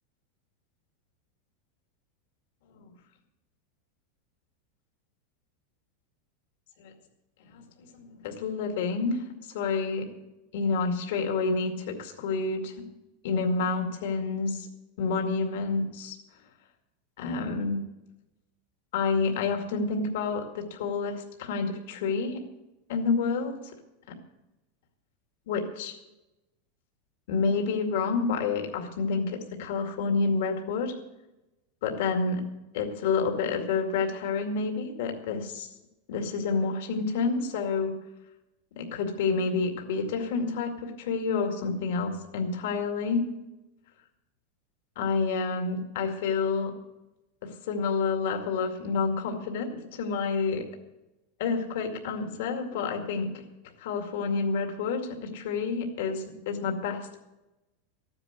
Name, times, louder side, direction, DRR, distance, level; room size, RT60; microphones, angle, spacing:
voice 1, 7.9-9.2 9.5-10.0 10.5-12.7 13.2-14.7 15.0-16.2 17.2-17.8 18.9-22.4 22.9-23.6 25.5-25.9 27.3-30.9 31.8-32.4 32.7-35.7 36.1-37.9 38.8-43.2 45.0-46.7 47.4-50.6 51.4-53.4 53.8-57.2, left 4 dB, 70° left, 3 dB, 2.2 m, -29 dB
14.0 x 9.7 x 8.2 m, 0.96 s
supercardioid pair, 145°, 0 cm